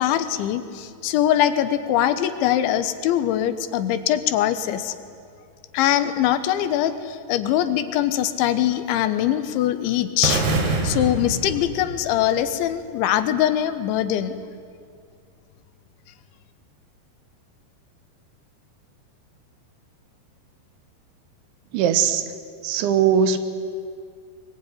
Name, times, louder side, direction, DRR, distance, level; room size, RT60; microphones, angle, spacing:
voice 1, 0.0-5.0 5.7-10.4 10.8-14.4, left 11 dB, 85° left, 11 dB, 3.4 m, -22 dB
sound 1, 10.2-12.3, right 3 dB, 65° right, 4.7 m, -25 dB
voice 2, 21.7-22.2 22.6-23.4, right 8 dB, 80° right, 10 dB, 3.6 m, -19 dB
23.5 x 23.0 x 9.7 m, 2.2 s
omnidirectional pair, 5.3 m